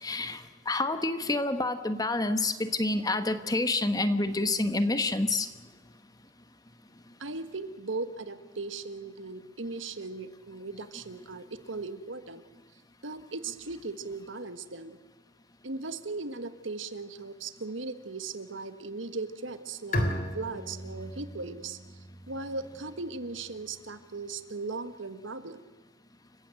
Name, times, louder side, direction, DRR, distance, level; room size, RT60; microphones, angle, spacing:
voice 1, 0.0-5.5, left 2 dB, 20° left, 9 dB, 1.3 m, -28 dB
voice 2, 7.2-12.4 13.0-15.0 15.6-20.0 20.3-21.8 22.3-25.6, right 3 dB, 85° right, 10 dB, 1.5 m, -38 dB
Bowed string instrument, 19.9-23.4, left 1 dB, 50° left, 3.5 m, -35 dB
29.0 x 16.0 x 7.7 m, 1.3 s
head